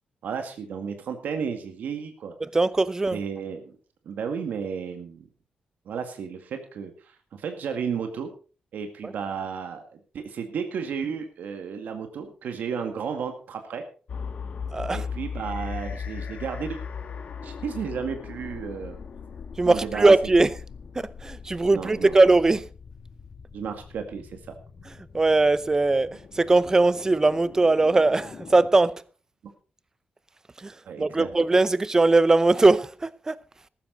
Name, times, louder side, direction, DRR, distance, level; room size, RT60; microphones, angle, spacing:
voice 1, 0.2-2.3 3.1-3.7 4.1-5.3 5.9-8.3 8.7-13.8 14.9-16.8 17.4-19.0 19.6-20.1 21.7-22.1 23.5-24.6 29.4-29.5 30.9-31.3, right 6 dB, 85° right, 2.0 m, -33 dB
voice 2, 2.5-3.2 9.0-9.1 14.7-15.0 19.6-20.5 20.9-22.7 25.1-29.0 30.6-33.4, right 3 dB, 20° right, 0.6 m, -20 dB
sound 1, 14.1-28.7, left 6 dB, 55° left, 2.1 m, -39 dB
14.5 x 13.0 x 4.0 m
wide cardioid pair, 135°, 3 cm